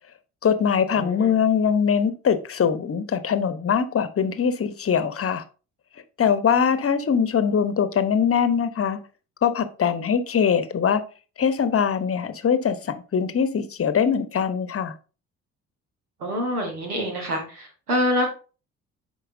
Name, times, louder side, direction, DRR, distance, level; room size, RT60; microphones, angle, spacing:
voice 1, 0.4-5.4 6.2-9.0 9.4-11.0 11.4-14.9, left 7 dB, 30° left, 0.9 m, -22 dB
voice 2, 1.0-1.3 16.2-18.3, equal, 85° right, 1.3 m, -26 dB
10.0 x 4.4 x 2.7 m
figure-of-eight pair, 45°, 43 cm